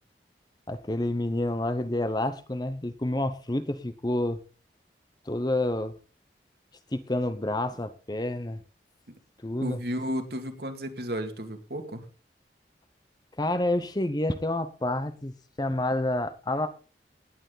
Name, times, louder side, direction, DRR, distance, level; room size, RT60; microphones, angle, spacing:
voice 1, 0.7-4.4 5.3-5.9 6.9-8.6 9.4-9.8 13.4-16.7, left 1 dB, 25° left, 12 dB, 0.8 m, -29 dB
voice 2, 9.6-12.1, equal, 60° right, 6 dB, 2.3 m, -33 dB
18.5 x 9.1 x 4.0 m, 0.37 s
head